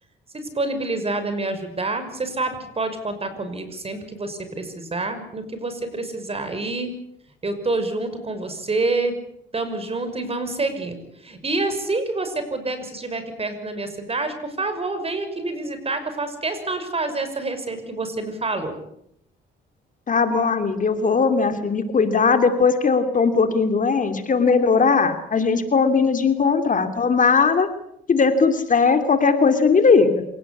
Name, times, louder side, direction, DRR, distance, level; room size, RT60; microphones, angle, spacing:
voice 1, 0.3-6.9 7.4-9.2 9.5-11.0 11.2-18.7, right 2 dB, 30° right, 9 dB, 6.1 m, -27 dB
voice 2, 20.1-27.7 28.1-30.2, left 5 dB, 40° left, 8 dB, 2.9 m, -19 dB
27.0 x 18.0 x 8.6 m, 0.77 s
cardioid pair, 90°, 20 cm